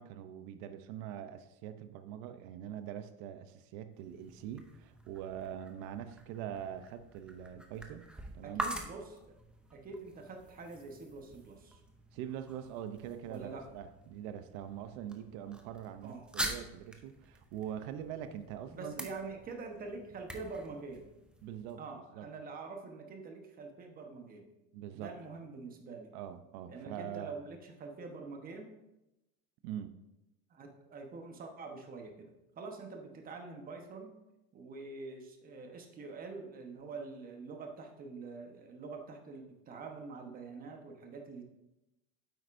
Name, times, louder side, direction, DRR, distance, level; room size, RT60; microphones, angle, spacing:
voice 1, 0.0-8.0 8.3-8.7 12.1-19.1 21.4-22.3 24.7-25.1 26.1-27.3 29.6-29.9, right 10 dB, 90° right, 10 dB, 0.7 m, -43 dB
sound 1, 3.9-21.7, right 1 dB, 5° right, 0.5 m, -46 dB
voice 2, 8.4-9.2 9.7-11.8 13.2-13.7 16.0-16.3 18.7-21.0 21.8-24.5 24.9-26.1 26.7-28.7 30.5-34.1 34.5-41.4, right 4 dB, 25° right, 3 dB, 1.1 m, -45 dB
9.3 x 7.8 x 2.6 m, 0.94 s
cardioid pair, 160°, 32 cm